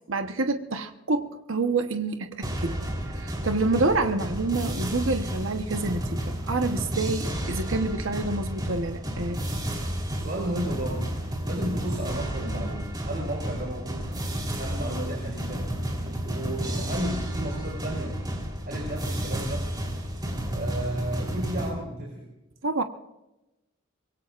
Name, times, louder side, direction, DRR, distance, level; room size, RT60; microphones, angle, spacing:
voice 1, 0.1-2.8 3.1-9.4 22.6-22.8, right 3 dB, 65° right, 6 dB, 1.1 m, -28 dB
sound 1, 2.4-21.7, equal, 20° right, 3.6 m, -31 dB
voice 2, 10.2-14.1 14.6-15.7 16.0-18.2 18.6-19.7 20.5-22.3, right 1 dB, 45° right, -2 dB, 4.9 m, -33 dB
24.5 x 21.5 x 2.5 m, 0.96 s
head